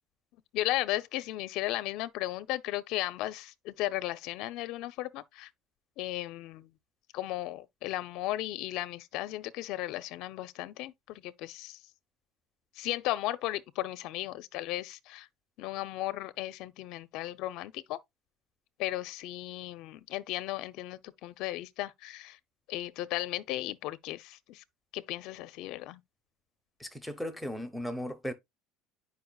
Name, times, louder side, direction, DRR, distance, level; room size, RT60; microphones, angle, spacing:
voice 1, 0.5-5.5 6.0-6.7 7.1-11.8 12.8-15.3 15.6-18.0 18.8-22.4 22.7-24.6 24.9-26.0, left 16 dB, 55° left, 0.6 m, -35 dB
voice 2, 26.8-28.3, equal, ahead, 0.9 m, -36 dB
9.3 x 5.2 x 2.3 m
cardioid pair, 160°, 0 cm